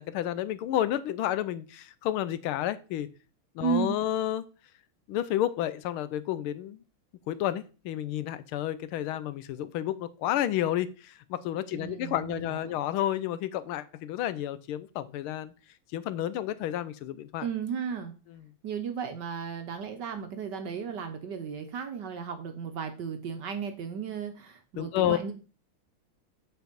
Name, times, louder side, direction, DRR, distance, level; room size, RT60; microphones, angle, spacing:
voice 1, 0.0-3.1 3.5-4.4 5.1-6.8 7.3-15.5 15.9-17.5 18.3-18.4 24.8-25.2, left 12 dB, 80° left, 15 dB, 1.4 m, -31 dB
voice 2, 3.6-4.0 11.7-12.7 17.4-18.1 18.6-25.3, right 7 dB, 60° right, 7 dB, 1.3 m, -34 dB
7.9 x 4.7 x 5.1 m, 0.34 s
omnidirectional pair, 2.4 m